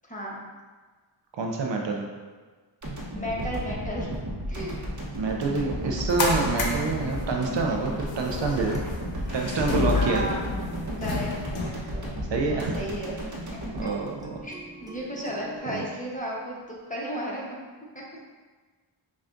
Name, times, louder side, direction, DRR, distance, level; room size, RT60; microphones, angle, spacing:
voice 1, 0.0-0.4 3.1-4.1 4.5-4.7 9.9-10.5 11.0-13.2 13.8-13.9 14.4-14.5 14.8-17.4, equal, 15° left, -4 dB, 1.0 m, -34 dB
voice 2, 1.3-2.1 5.2-8.8 9.3-10.4 12.3-12.8 13.8-14.4 15.7-15.8, right 4 dB, 65° right, 1 dB, 0.6 m, -27 dB
sound 1, 2.8-15.0, equal, 40° right, 1.0 m, -34 dB
sound 2, 5.8-11.7, left 3 dB, 65° left, 0.7 m, -31 dB
sound 3, 8.4-12.7 13.9-15.6, right 3 dB, 10° right, 0.5 m, -47 dB
5.6 x 2.4 x 2.5 m, 1.4 s
cardioid pair, 55°, 48 cm